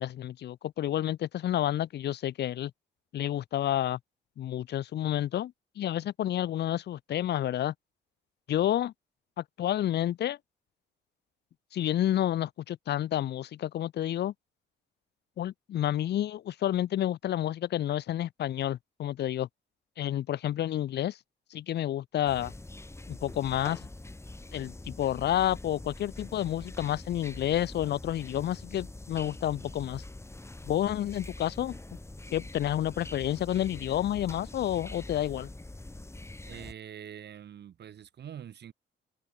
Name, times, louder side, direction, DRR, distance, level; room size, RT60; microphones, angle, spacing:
voice 1, 0.0-2.7 3.1-4.0 4.4-7.7 8.5-8.9 9.4-10.4 11.7-14.3 15.4-19.5 20.0-21.2 21.5-22.5 23.1-23.9 24.5-30.0 30.6-31.8 32.3-35.5, left 12 dB, 60° left, 0.6 m, -30 dB
sound 1, 22.3-36.7, left 2 dB, 15° left, 5.9 m, -44 dB
voice 2, 36.4-38.7, right 9 dB, 60° right, 2.1 m, -44 dB
cardioid pair, 90°, 20 cm